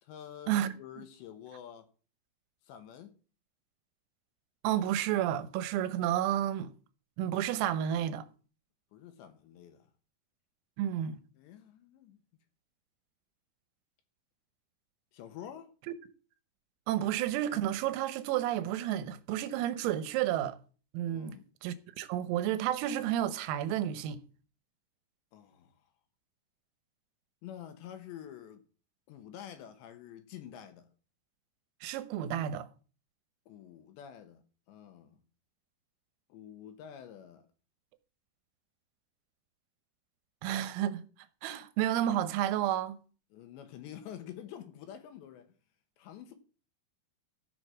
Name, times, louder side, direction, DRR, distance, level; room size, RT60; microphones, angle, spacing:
voice 1, 0.0-1.9 2.6-3.2 8.9-9.9 11.3-12.2 15.1-15.7 21.1-21.5 25.3-25.9 27.4-28.6 29.1-30.9 33.5-35.2 36.3-37.5 43.3-45.5 46.0-46.3, left 10 dB, 70° left, 3.1 m, -48 dB
voice 2, 4.6-6.7 7.2-8.3 10.8-11.2 16.9-20.6 20.9-21.4 21.6-24.2 31.8-32.7 40.4-41.0 41.4-43.0, right 11 dB, 90° right, 3.6 m, -31 dB
15.0 x 6.1 x 6.1 m
omnidirectional pair, 5.9 m